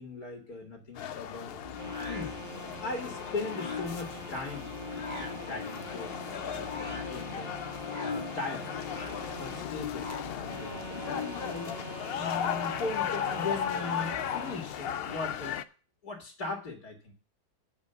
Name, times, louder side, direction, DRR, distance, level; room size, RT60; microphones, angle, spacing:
voice 1, 0.0-1.6 2.1-2.4 2.8-7.5 8.0-8.7 9.4-11.7 12.2-15.6 16.0-17.1, left 3 dB, 70° left, 0 dB, 2.5 m, -39 dB
sound 1, 1.0-15.6, left 9 dB, 90° left, 0.5 m, -36 dB
sound 2, 1.6-11.6, left 4 dB, 30° left, 1.6 m, -41 dB
sound 3, 1.8-9.7 10.4-14.6, right 5 dB, 45° right, 1.4 m, -45 dB
11.0 x 5.0 x 6.8 m, 0.36 s
omnidirectional pair, 1.7 m